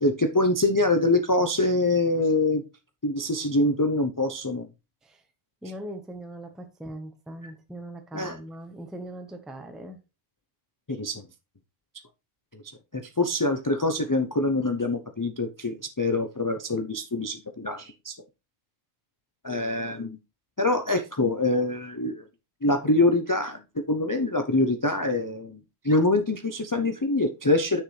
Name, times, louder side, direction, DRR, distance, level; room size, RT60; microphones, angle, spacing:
voice 1, 0.0-2.6 3.0-4.7 8.1-8.4 10.9-11.2 12.5-12.6 12.9-18.1 19.4-20.2 20.6-22.2 22.6-27.8, left 2 dB, 25° left, 0.4 m, -25 dB
voice 2, 5.6-10.0, right 1 dB, ahead, 0.9 m, -40 dB
9.7 x 6.5 x 3.2 m
omnidirectional pair, 1.3 m